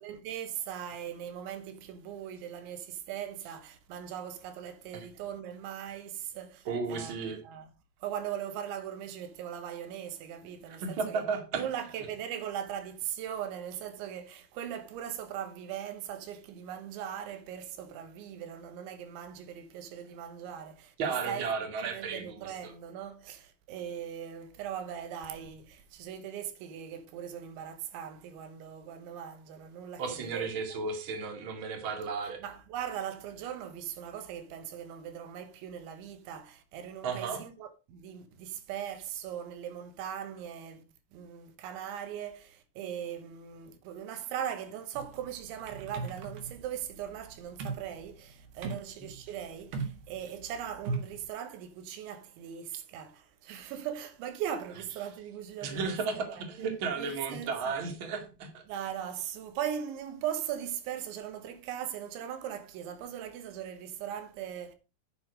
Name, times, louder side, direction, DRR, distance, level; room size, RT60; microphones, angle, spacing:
voice 1, 0.0-7.7 8.0-11.3 11.6-21.0 21.3-21.5 21.8-30.5 32.4-40.8 41.1-56.4 57.0-57.8 58.7-64.8, right 9 dB, 90° right, 3.6 m, -39 dB
voice 2, 6.7-7.4 10.7-11.6 21.0-22.7 30.0-32.4 37.0-37.4 48.6-48.7 49.0-49.1 55.6-58.6, right 5 dB, 40° right, 2.2 m, -34 dB
sound 1, 44.9-51.3, right 4 dB, 65° right, 3.5 m, -39 dB
9.6 x 7.0 x 5.1 m
omnidirectional pair, 5.2 m